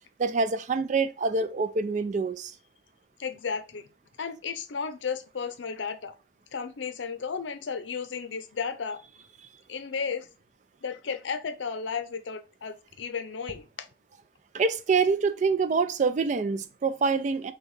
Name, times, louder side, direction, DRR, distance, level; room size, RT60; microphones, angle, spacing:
voice 1, 0.2-2.5 14.5-17.5, right 4 dB, 40° right, 0.3 m, -26 dB
voice 2, 3.2-3.9 4.2-6.1 6.5-9.0 9.7-10.3 10.8-13.7, left 5 dB, 80° left, 0.6 m, -34 dB
6.2 x 2.3 x 3.1 m
head